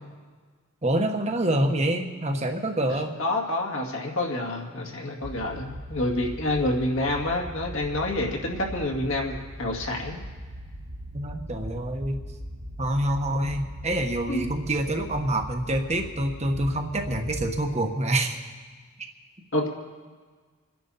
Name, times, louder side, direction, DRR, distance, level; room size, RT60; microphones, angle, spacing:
voice 1, 0.8-3.1 11.1-12.2 12.8-18.4, right 1 dB, 30° right, 4 dB, 1.3 m, -26 dB
voice 2, 3.2-10.2 14.3-14.5 19.5-19.7, left 1 dB, 60° left, 0 dB, 2.2 m, -28 dB
sound 1, 5.2-17.6, equal, 60° right, 1.9 m, -39 dB
27.0 x 10.5 x 4.2 m, 1.5 s
head